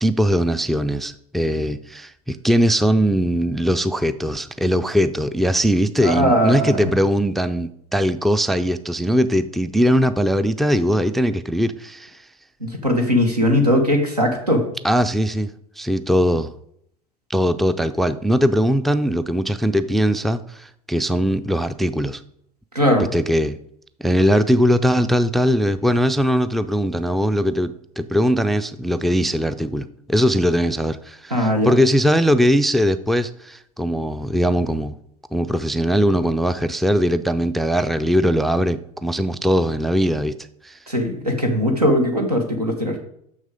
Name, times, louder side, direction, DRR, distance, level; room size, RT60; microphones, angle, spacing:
voice 1, 0.0-12.2 14.8-16.5 17.3-22.2 23.0-23.6 24.0-34.9 35.3-40.3 40.6-40.8, equal, ahead, 13 dB, 0.3 m, -20 dB
voice 2, 6.0-6.9 12.6-14.6 22.7-23.1 31.3-31.7 40.9-43.0, equal, 90° right, 4 dB, 1.4 m, -19 dB
6.4 x 6.3 x 5.1 m, 0.72 s
figure-of-eight pair, 75°, 20 cm